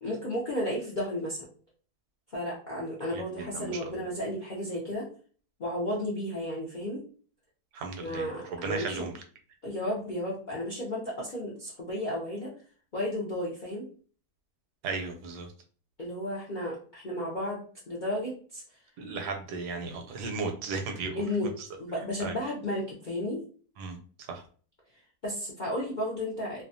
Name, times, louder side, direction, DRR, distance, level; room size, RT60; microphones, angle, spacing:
voice 1, 0.0-1.5 2.3-5.1 5.6-7.0 8.0-9.1 9.6-12.5 12.9-13.9 16.0-18.6 21.1-21.5 21.8-23.4 25.2-26.6, left 1 dB, 60° left, -5 dB, 0.5 m, -33 dB
voice 2, 3.1-4.0 7.7-9.1 14.8-15.5 19.0-21.2 21.6-21.7 22.2-22.3 23.8-24.0 24.3-24.4, right 4 dB, 80° right, 4 dB, 1.1 m, -35 dB
2.7 x 2.2 x 2.5 m, 0.42 s
omnidirectional pair, 1.7 m